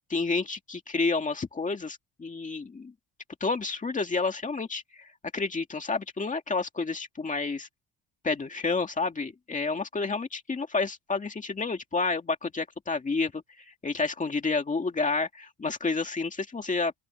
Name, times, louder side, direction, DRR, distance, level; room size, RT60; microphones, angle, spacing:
voice 1, 0.1-2.9 3.4-7.7 8.2-16.9, left 4 dB, 15° left, 2.2 m, -30 dB
open air
cardioid pair, 170°, 49 cm